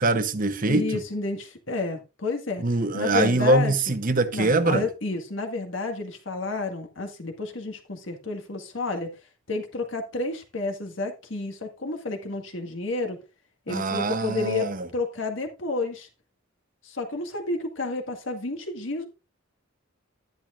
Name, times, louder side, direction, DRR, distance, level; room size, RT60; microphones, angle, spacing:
voice 1, 0.0-1.0 2.6-4.9 13.7-14.9, right 2 dB, 40° right, 0.9 m, -23 dB
voice 2, 0.6-2.7 2.9-3.7 4.3-9.1 9.5-13.2 13.7-16.1 16.8-19.1, left 3 dB, 65° left, 1.8 m, -30 dB
12.0 x 10.5 x 2.5 m
head